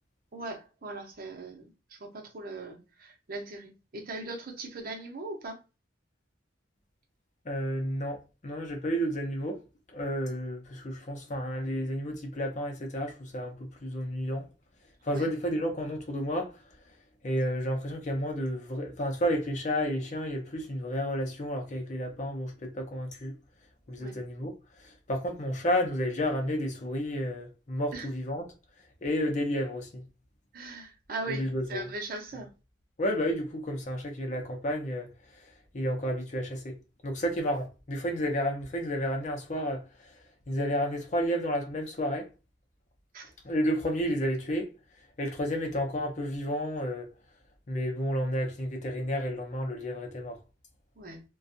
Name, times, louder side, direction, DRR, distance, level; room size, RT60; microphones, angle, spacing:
voice 1, 0.3-5.6 15.1-15.3 24.0-24.2 27.9-28.1 30.5-32.5 43.1-43.3 51.0-51.2, right 2 dB, 50° right, 0.7 m, -39 dB
voice 2, 7.5-9.6 9.9-14.5 15.0-16.5 17.2-23.3 23.9-24.5 24.8-28.5 29.0-30.0 31.3-31.9 33.0-35.1 35.7-36.7 37.0-40.1 40.5-42.3 43.4-44.7 45.2-47.1 47.7-50.4, equal, 40° left, 0.6 m, -31 dB
2.5 x 2.3 x 2.6 m
head